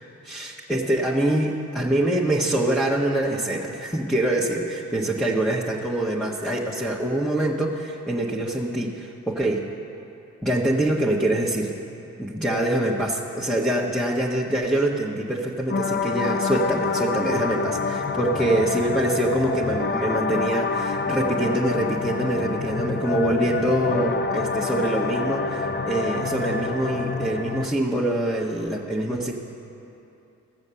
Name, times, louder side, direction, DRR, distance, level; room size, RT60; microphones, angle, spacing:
voice 1, 0.3-9.7 10.4-11.7 12.2-29.3, right 1 dB, ahead, -4 dB, 1.4 m, -25 dB
sound 1, 15.7-27.7, left 4 dB, 25° left, 0.8 m, -27 dB
15.5 x 7.1 x 6.9 m, 2.9 s
supercardioid pair, 45°, 38 cm